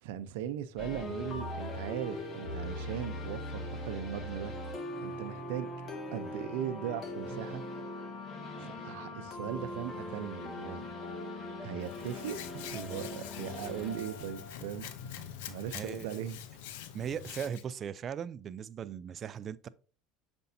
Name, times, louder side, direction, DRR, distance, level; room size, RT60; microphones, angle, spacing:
voice 1, 0.0-4.5 5.0-5.7 6.1-7.6 8.6-10.9 11.6-16.4, right 10 dB, 80° right, 0.6 m, -39 dB
sound 1, 0.8-15.6, left 2 dB, 40° left, 2.0 m, -41 dB
Hands, 11.8-17.6, left 10 dB, 80° left, 0.7 m, -45 dB
voice 2, 15.7-16.2 16.8-19.7, right 8 dB, 40° right, 0.4 m, -38 dB
6.7 x 5.3 x 2.7 m
supercardioid pair, 95°, 0 cm